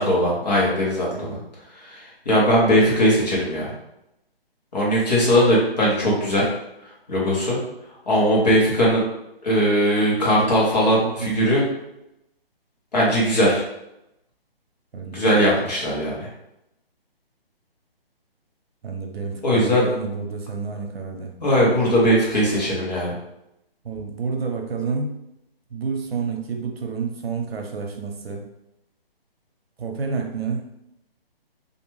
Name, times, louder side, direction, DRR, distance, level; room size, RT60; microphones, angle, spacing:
voice 1, 0.0-1.4 1.8-3.7 4.7-6.5 7.1-7.6 8.1-9.0 9.4-11.6 12.9-13.6 15.1-16.3 19.4-19.9 21.4-23.1, equal, 45° left, -5 dB, 1.0 m, -19 dB
voice 2, 11.0-11.4 14.9-15.4 18.8-21.4 23.8-25.1 25.7-28.5 29.8-30.7, right 5 dB, 75° right, 2 dB, 0.7 m, -29 dB
2.5 x 2.2 x 3.0 m, 0.85 s
hypercardioid pair, 170°, 30 cm